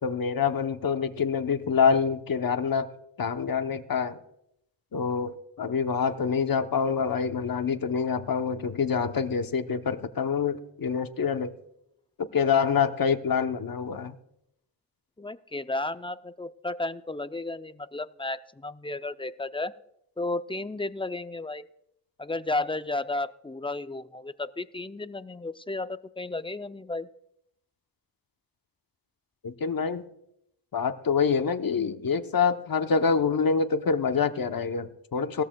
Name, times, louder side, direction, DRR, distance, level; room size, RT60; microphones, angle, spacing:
voice 1, 0.0-2.9 3.2-4.2 4.9-11.5 12.2-14.2 29.4-30.0 30.7-35.4, left 6 dB, 50° left, 8 dB, 0.9 m, -26 dB
voice 2, 15.2-19.7 20.2-21.6 22.2-27.1, left 2 dB, 10° left, 12 dB, 0.5 m, -33 dB
19.0 x 13.5 x 2.3 m, 0.79 s
cardioid pair, 65°, 44 cm